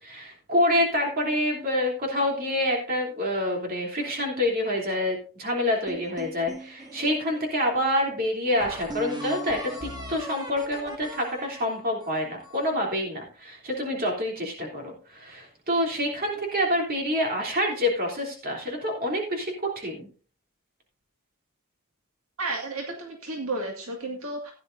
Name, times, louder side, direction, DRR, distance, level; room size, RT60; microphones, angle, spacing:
voice 1, 0.0-20.1, left 1 dB, 45° right, 1 dB, 3.2 m, -27 dB
sound 1, 5.9-7.4 8.0-8.1 8.6-12.8, equal, 20° right, 1.7 m, -39 dB
voice 2, 22.4-24.5, right 2 dB, 75° right, 1 dB, 2.1 m, -32 dB
15.5 x 10.0 x 2.6 m, 0.38 s
head